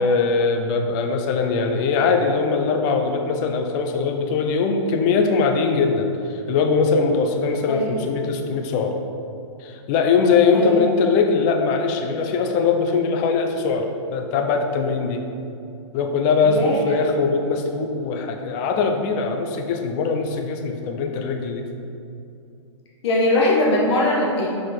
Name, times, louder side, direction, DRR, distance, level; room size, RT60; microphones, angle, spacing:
voice 1, 0.0-8.9 9.6-15.2 15.9-21.7, left 4 dB, 35° left, 4 dB, 0.8 m, -21 dB
voice 2, 16.4-16.8 23.0-24.5, left 1 dB, 60° left, -3 dB, 1.4 m, -20 dB
6.2 x 5.0 x 4.5 m, 2.6 s
hypercardioid pair, 135°, 16 cm